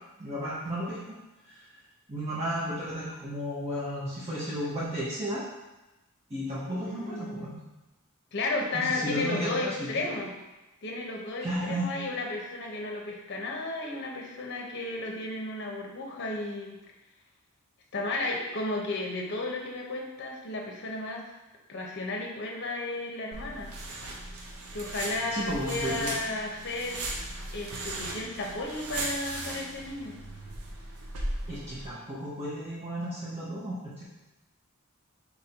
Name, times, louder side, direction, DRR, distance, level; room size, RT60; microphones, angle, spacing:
voice 1, 0.2-1.0 1.5-1.6 2.1-5.4 6.3-7.6 8.7-10.1 11.4-11.9 25.3-26.1 31.5-34.0, equal, 30° right, -9 dB, 0.8 m, -33 dB
voice 2, 6.7-7.5 8.3-10.3 10.8-16.8 17.9-21.2 21.7-23.7 24.7-27.0 27.5-30.1, left 2 dB, 55° left, 0 dB, 0.7 m, -33 dB
sound 1, 23.3-31.9, right 2 dB, 80° right, 0.7 m, -37 dB
4.2 x 2.6 x 4.3 m, 1.0 s
head